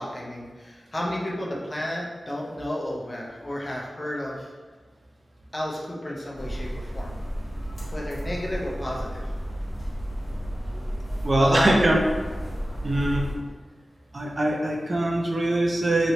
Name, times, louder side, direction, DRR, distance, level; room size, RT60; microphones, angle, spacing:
voice 1, 0.0-4.5 5.5-7.2 7.9-9.3 11.4-11.7, left 1 dB, 25° left, -3 dB, 0.6 m, -32 dB
sound 1, 6.3-13.4, equal, 5° left, 1.2 m, -32 dB
voice 2, 11.2-12.0 12.8-13.2 14.1-16.1, right 1 dB, 40° right, -1 dB, 0.5 m, -22 dB
3.0 x 3.0 x 2.8 m, 1.4 s
wide cardioid pair, 90°, 0 cm